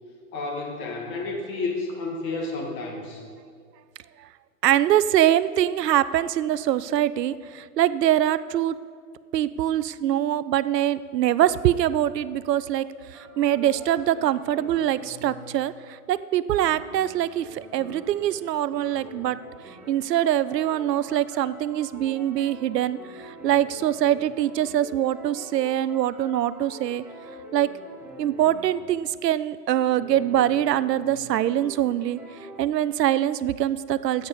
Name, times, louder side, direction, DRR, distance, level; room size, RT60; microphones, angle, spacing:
voice 1, 0.3-3.2, left 3 dB, 25° left, 1 dB, 1.8 m, -31 dB
voice 2, 4.6-8.8 9.3-19.4 19.9-27.0 27.5-27.7 28.2-32.2 32.6-34.3, right 12 dB, 85° right, 16 dB, 0.6 m, -23 dB
sound 1, 13.1-16.0 16.6-29.0 29.9-32.6, equal, 5° right, 2.0 m, -45 dB
14.5 x 8.6 x 4.2 m, 2.1 s
hypercardioid pair, 150°, 48 cm